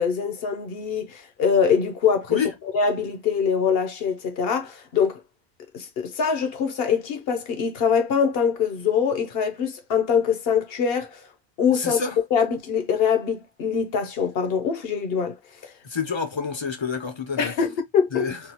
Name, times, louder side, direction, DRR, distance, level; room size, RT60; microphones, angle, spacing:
voice 1, 0.0-2.4 2.7-5.2 5.7-11.2 11.6-12.0 12.3-15.4 15.6-15.7 17.4-18.3, left 6 dB, 65° left, 1.0 m, -23 dB
voice 2, 11.7-12.2 15.8-17.5 18.1-18.4, left 5 dB, 35° left, 0.5 m, -28 dB
3.5 x 2.4 x 2.8 m
omnidirectional pair, 1.1 m